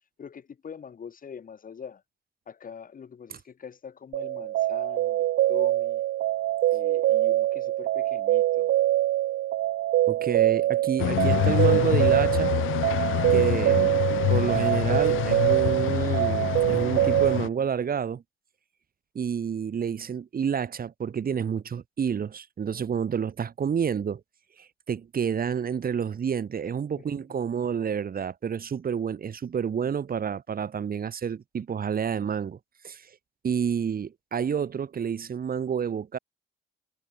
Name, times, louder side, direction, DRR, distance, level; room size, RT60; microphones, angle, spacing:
voice 1, 0.2-2.0 2.5-6.0 6.7-8.7 27.1-27.4, left 7 dB, 45° left, 4.8 m, -43 dB
sound 1, 4.1-17.4, right 15 dB, 75° right, 0.8 m, -24 dB
voice 2, 10.1-12.5 13.3-13.9 14.3-18.2 19.1-24.2 24.6-32.6 32.8-33.1 33.4-36.2, right 7 dB, 45° right, 6.7 m, -29 dB
sound 2, 11.0-17.5, left 16 dB, 80° left, 1.2 m, -26 dB
cardioid pair, 100°, 20 cm